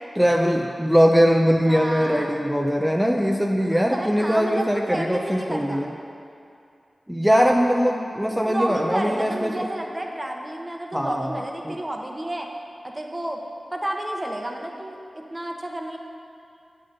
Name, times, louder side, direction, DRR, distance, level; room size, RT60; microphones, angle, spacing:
voice 1, 0.2-5.9 7.1-9.7 10.9-11.3 11.6-11.8, equal, ahead, 1 dB, 0.5 m, -21 dB
voice 2, 1.7-2.4 3.6-5.9 8.4-12.5 12.8-13.4 13.7-16.0, right 1 dB, 25° right, 1 dB, 1.0 m, -31 dB
8.5 x 3.9 x 6.4 m, 2.5 s
cardioid pair, 45°, 0 cm